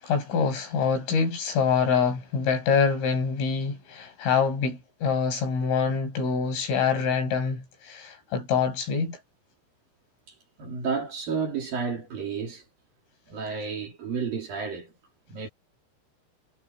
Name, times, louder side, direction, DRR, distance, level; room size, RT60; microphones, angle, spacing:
voice 1, 0.0-9.2, left 6 dB, 70° left, 9.3 m, -25 dB
voice 2, 10.6-12.6 13.3-14.9 15.3-15.5, right 5 dB, 45° right, 4.8 m, -31 dB
omnidirectional pair, 5.9 m